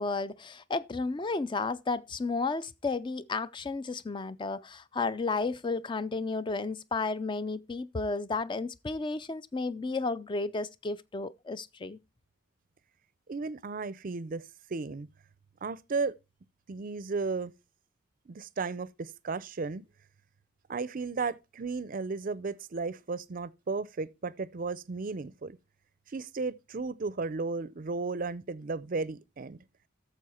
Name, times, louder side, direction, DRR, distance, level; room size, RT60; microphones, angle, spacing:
voice 1, 0.0-12.0, left 3 dB, 25° left, 0.4 m, -32 dB
voice 2, 13.3-15.1 15.6-16.1 16.7-17.5 18.3-19.8 20.7-25.6 26.1-29.6, right 4 dB, 40° right, 0.5 m, -34 dB
9.5 x 6.9 x 4.3 m
head